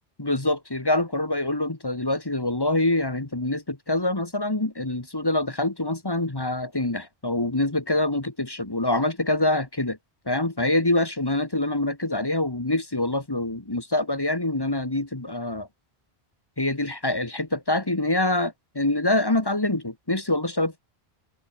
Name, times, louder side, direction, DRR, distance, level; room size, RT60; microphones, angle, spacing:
voice 1, 0.2-10.0 10.3-15.7 16.6-20.8, left 2 dB, 20° left, 1.7 m, -25 dB
omnidirectional pair, 1.1 m